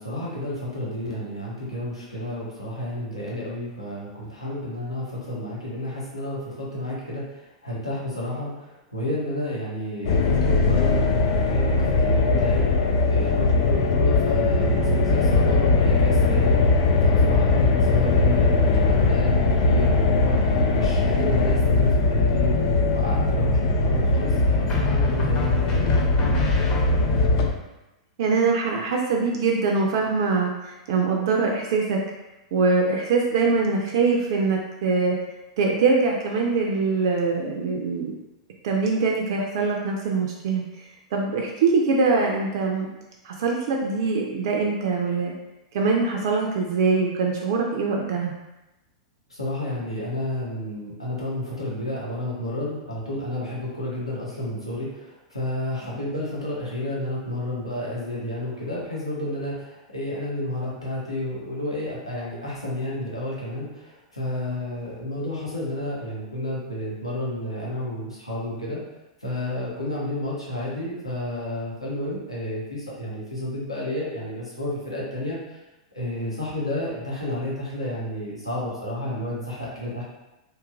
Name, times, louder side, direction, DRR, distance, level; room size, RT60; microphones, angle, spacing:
voice 1, 0.0-12.7 13.1-26.2 49.3-68.8 69.2-75.6 75.9-80.0, left 1 dB, 85° left, -6 dB, 0.7 m, -31 dB
sound 1, 10.0-27.5, left 3 dB, 50° left, 0.3 m, -20 dB
sound 2, 22.0-22.6 24.7-27.4, left 2 dB, 25° left, 0.7 m, -30 dB
voice 2, 28.2-32.0 32.5-35.2 35.6-38.1 38.6-40.6 41.1-42.9 43.2-45.3 45.7-48.3, right 4 dB, 50° right, 0 dB, 0.3 m, -23 dB
2.7 x 2.3 x 2.3 m, 0.99 s
figure-of-eight pair, 95°, 3 cm